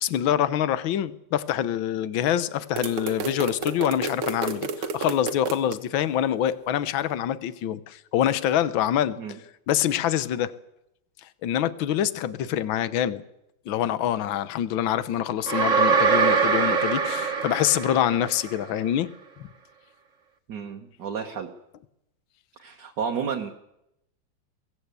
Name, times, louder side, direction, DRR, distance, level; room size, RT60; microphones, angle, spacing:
voice 1, 0.0-9.2 9.7-10.5 11.2-13.2 13.7-19.1, left 10 dB, 70° left, 14 dB, 1.6 m, -25 dB
sound 1, 2.8-5.8, right 5 dB, 80° right, 2.1 m, -31 dB
sound 2, 15.5-18.6, right 5 dB, 40° right, 1.9 m, -23 dB
voice 2, 20.5-21.5 22.6-23.5, right 6 dB, 55° right, 2 dB, 1.8 m, -31 dB
22.5 x 16.5 x 8.2 m, 0.87 s
omnidirectional pair, 2.3 m